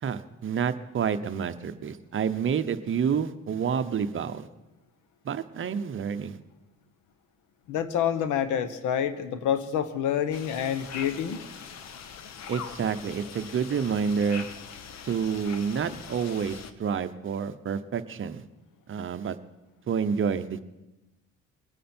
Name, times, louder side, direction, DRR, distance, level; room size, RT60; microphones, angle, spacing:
voice 1, 0.0-4.5 5.2-6.4 12.5-14.5 15.0-18.4 18.9-19.4 19.9-20.6, right 7 dB, 45° right, 11 dB, 0.8 m, -29 dB
voice 2, 7.7-11.4, left 9 dB, 85° left, 11 dB, 1.1 m, -27 dB
sound 1, 10.3-16.7, left 7 dB, 60° left, 1.1 m, -42 dB
22.0 x 9.1 x 4.4 m, 1.0 s
cardioid pair, 100°, 30 cm